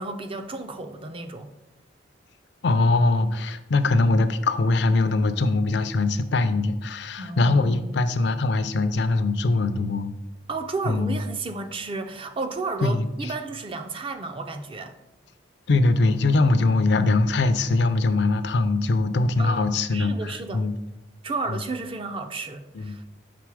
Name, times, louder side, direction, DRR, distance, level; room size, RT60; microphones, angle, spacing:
voice 1, 0.0-1.5 7.2-8.0 10.5-14.9 19.4-20.6 21.2-23.2, right 3 dB, 25° right, 0.4 m, -33 dB
voice 2, 2.6-10.1 10.9-11.2 12.8-13.3 15.7-20.7 21.5-21.6 22.7-23.0, left 3 dB, 60° left, 0.4 m, -22 dB
5.9 x 3.8 x 4.7 m
head